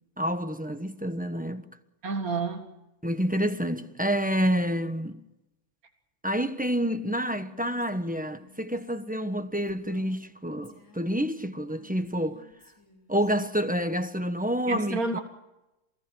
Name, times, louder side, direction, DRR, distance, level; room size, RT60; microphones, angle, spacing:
voice 1, 0.2-1.6 3.0-5.2 6.2-12.4 13.1-15.2, equal, 5° right, 1.1 m, -28 dB
voice 2, 2.0-2.7 14.7-15.2, right 3 dB, 80° right, 2.3 m, -29 dB
Female speech woman speaking, 6.9-10.3 10.6-13.4, left 3 dB, 10° left, 4.2 m, -57 dB
27.5 x 18.0 x 6.4 m
omnidirectional pair, 1.5 m